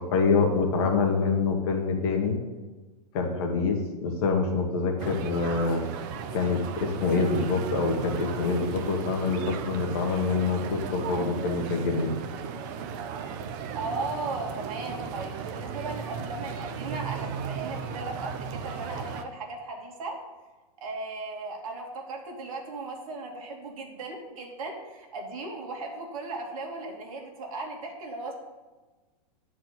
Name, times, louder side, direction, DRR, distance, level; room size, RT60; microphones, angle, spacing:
voice 1, 0.1-2.4 3.1-5.8 6.3-12.1, left 4 dB, 40° left, 2 dB, 1.6 m, -26 dB
sound 1, 5.0-19.2, right 7 dB, 30° right, 0.6 m, -36 dB
voice 2, 13.7-20.2 20.8-28.3, right 3 dB, 55° right, 1 dB, 2.5 m, -37 dB
10.0 x 4.7 x 8.0 m, 1.2 s
supercardioid pair, 165°, 21 cm